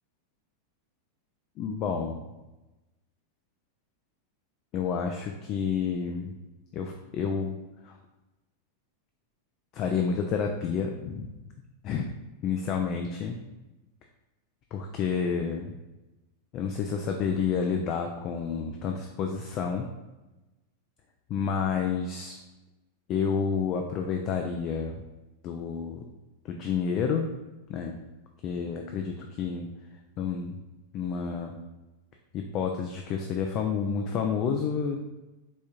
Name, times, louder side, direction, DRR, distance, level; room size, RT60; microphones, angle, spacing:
voice 1, 1.6-2.2 4.7-6.3 6.7-7.5 7.8-8.0 9.7-11.3 11.8-12.1 12.4-13.4 14.7-15.8 16.5-19.9 21.3-22.3 23.1-25.0 25.4-26.0 26.4-27.3 27.7-28.0 28.4-29.7 30.2-30.6 30.9-31.6 32.3-35.0, left 6 dB, 35° left, 3 dB, 0.3 m, -29 dB
4.3 x 3.5 x 2.3 m, 1.1 s
figure-of-eight pair, 90°, 0 cm